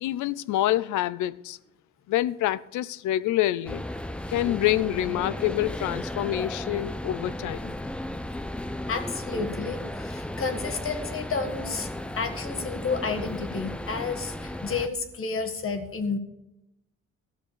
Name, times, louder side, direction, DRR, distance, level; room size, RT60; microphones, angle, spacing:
voice 1, 0.0-1.6 2.1-3.8 4.3-7.7, left 14 dB, 80° left, 0.5 m, -27 dB
sound 1, 3.7-14.9, left 1 dB, 5° left, 0.6 m, -35 dB
voice 2, 8.9-11.9 12.2-16.2, left 4 dB, 45° left, 1.7 m, -31 dB
14.0 x 6.3 x 6.8 m
cardioid pair, 90°, 30 cm